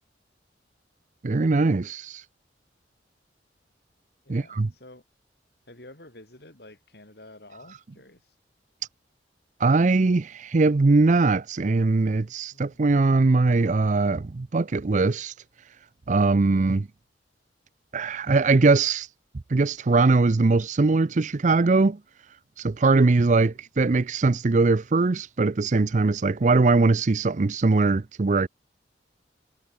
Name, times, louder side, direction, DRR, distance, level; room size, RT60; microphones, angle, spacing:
voice 1, 1.2-2.2 4.3-4.7 9.6-15.3 16.1-16.9 17.9-19.1 19.5-22.0 22.6-28.5, right 3 dB, 40° right, 0.5 m, -21 dB
voice 2, 4.3-5.0 5.7-8.2 12.5-12.8 23.5-23.6, left 1 dB, 60° left, 5.2 m, -49 dB
head